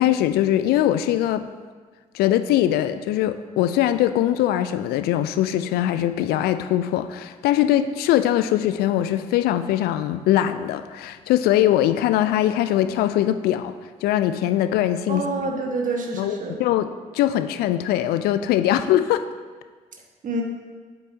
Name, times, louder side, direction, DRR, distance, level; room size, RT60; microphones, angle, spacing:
voice 1, 0.0-1.5 2.1-13.7 14.0-15.2 16.1-16.9 17.1-19.2, left 12 dB, 55° left, 11 dB, 0.4 m, -21 dB
voice 2, 15.1-16.6 20.2-20.4, right 3 dB, 45° right, 1 dB, 1.4 m, -27 dB
8.2 x 7.6 x 2.7 m, 1.5 s
figure-of-eight pair, 45°, 19 cm